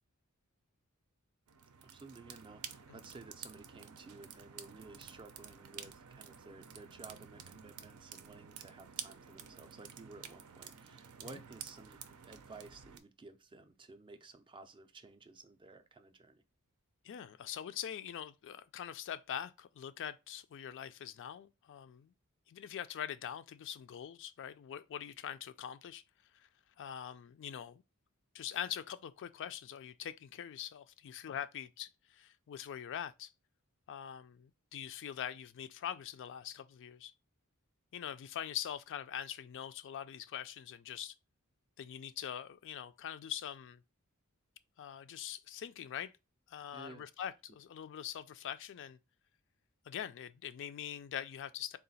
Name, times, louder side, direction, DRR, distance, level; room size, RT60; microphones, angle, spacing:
sound 1, 1.5-13.0, right 8 dB, 75° right, 0.5 m, -51 dB
voice 1, 1.8-16.4 46.7-47.1, right 3 dB, 20° right, 0.4 m, -54 dB
voice 2, 17.0-22.1 22.5-26.0 26.3-26.5 26.8-27.8 28.3-33.3 33.9-37.1 37.9-41.1 41.8-43.8 44.8-46.1 46.5-49.0 49.9-51.8, left 9 dB, 55° left, 0.3 m, -43 dB
3.8 x 2.4 x 4.0 m
head